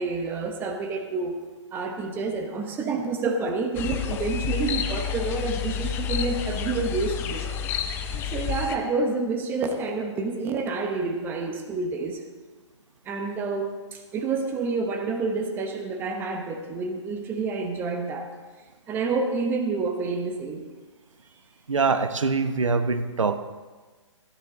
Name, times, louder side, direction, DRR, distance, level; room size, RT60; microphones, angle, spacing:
voice 1, 0.0-1.4 1.7-7.5 8.3-12.2 13.1-18.3 18.9-20.6, right 4 dB, 15° right, 5 dB, 0.9 m, -28 dB
sound 1, 3.8-8.8, left 8 dB, 15° left, 0.6 m, -29 dB
voice 2, 21.7-23.4, right 4 dB, 90° right, 10 dB, 0.9 m, -23 dB
14.0 x 10.5 x 3.9 m, 1.4 s
hypercardioid pair, 150°, 16 cm